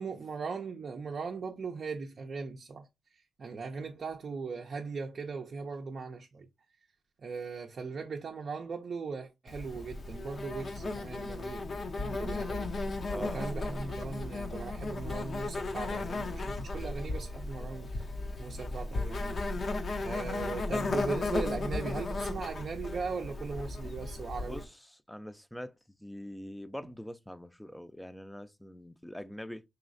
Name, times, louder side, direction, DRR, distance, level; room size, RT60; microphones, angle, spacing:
voice 1, 0.0-2.9 3.4-6.5 7.2-12.7 13.1-18.1 18.4-19.4 20.0-24.6, right 4 dB, 60° right, 0.5 m, -39 dB
Insect, 9.5-24.6, left 2 dB, 55° left, 0.7 m, -35 dB
voice 2, 13.1-13.7 24.4-24.7 25.1-25.7 26.0-29.6, left 1 dB, 5° left, 0.5 m, -43 dB
4.3 x 3.0 x 2.5 m
supercardioid pair, 50°, 0 cm